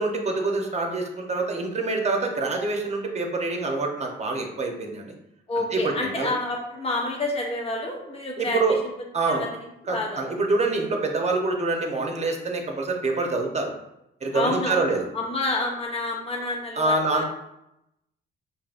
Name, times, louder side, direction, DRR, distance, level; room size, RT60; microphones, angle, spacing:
voice 1, 0.0-5.1 5.5-6.3 8.4-8.8 9.1-9.4 9.9-13.7 14.2-15.1 16.8-17.2, right 3 dB, 35° right, 2 dB, 0.8 m, -26 dB
voice 2, 5.5-8.9 9.3-9.5 9.9-10.2 14.3-14.9 15.1-17.2, left 2 dB, 30° left, 0 dB, 1.0 m, -28 dB
5.1 x 2.7 x 2.5 m, 0.85 s
cardioid pair, 90°, 20 cm